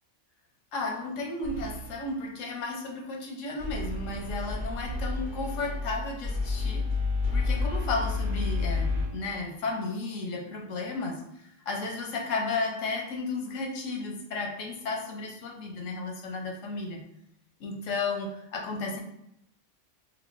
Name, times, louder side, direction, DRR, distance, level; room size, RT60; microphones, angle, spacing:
voice 1, 0.7-6.9 7.3-17.0 17.6-19.0, left 3 dB, 85° left, 1 dB, 1.1 m, -33 dB
sound 1, 1.4-2.2 3.6-9.1, left 3 dB, 25° right, 1.6 m, -30 dB
3.7 x 3.0 x 2.5 m, 0.77 s
omnidirectional pair, 1.3 m